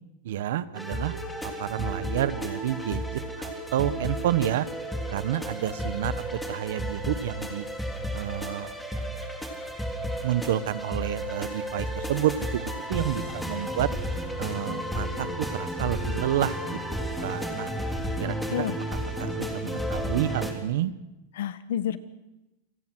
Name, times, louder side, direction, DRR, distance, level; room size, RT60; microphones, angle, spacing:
voice 1, 0.2-1.2 1.4-3.1 3.4-4.7 5.1-7.7 8.1-8.7 10.2-12.6 12.9-13.9 14.4-16.8 17.2-17.7 18.2-18.7 19.2-20.9, right 12 dB, 75° right, 15 dB, 1.2 m, -29 dB
sound 1, 0.7-20.5, equal, 5° left, 3.4 m, -33 dB
voice 2, 18.3-18.8 21.4-22.0, left 10 dB, 80° left, 13 dB, 1.5 m, -30 dB
28.5 x 18.5 x 6.3 m, 1.0 s
supercardioid pair, 135°, 0 cm